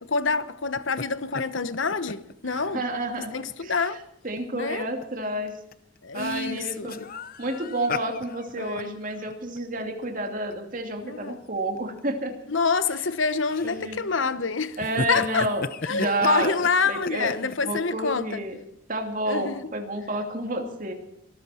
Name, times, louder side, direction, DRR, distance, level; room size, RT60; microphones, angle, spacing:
voice 1, 0.0-2.8 3.2-4.0 4.5-4.9 6.0-7.1 8.6-9.0 11.0-11.4 12.5-14.8 15.1-15.5 15.8-18.4 19.3-19.7, left 4 dB, 75° left, 1.1 m, -27 dB
sound 1, 0.8-1.0 1.3-2.3 2.7-2.8 3.3-3.5 4.4-4.5 4.8-5.0 5.5-10.5 10.9-11.0 11.8-12.0 12.7-13.1 13.5-14.1 14.6-17.8, left 4 dB, 45° left, 0.8 m, -36 dB
voice 2, 2.5-3.3 3.6-3.9 4.2-5.5 6.1-7.0 7.4-12.3 13.6-14.0 14.8-16.5 16.9-18.6 18.9-20.9, right 1 dB, 40° right, 2.7 m, -30 dB
23.5 x 13.5 x 4.4 m
head